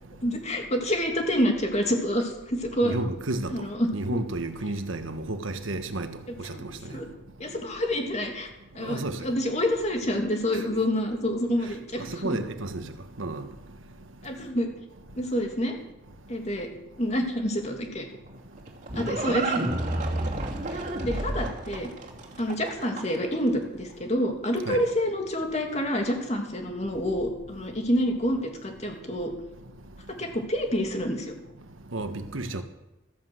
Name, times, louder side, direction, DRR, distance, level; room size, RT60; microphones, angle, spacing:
voice 1, 0.2-2.9 3.5-3.9 6.3-6.6 6.9-7.1 7.4-8.5 8.7-12.1 14.2-14.7 15.2-15.8 16.3-16.7 17.0-18.0 18.9-19.6 20.7-21.9 22.4-29.3 30.2-31.3, equal, 35° left, 2.8 m, -27 dB
voice 2, 2.8-3.7 3.9-6.7 8.8-9.2 12.1-12.9 13.2-13.5 24.7-24.9 31.9-32.6, right 2 dB, 80° right, 1.4 m, -32 dB
Livestock farm animals working animals, 18.3-23.3, right 2 dB, 40° right, 2.7 m, -30 dB
15.0 x 11.0 x 7.9 m
head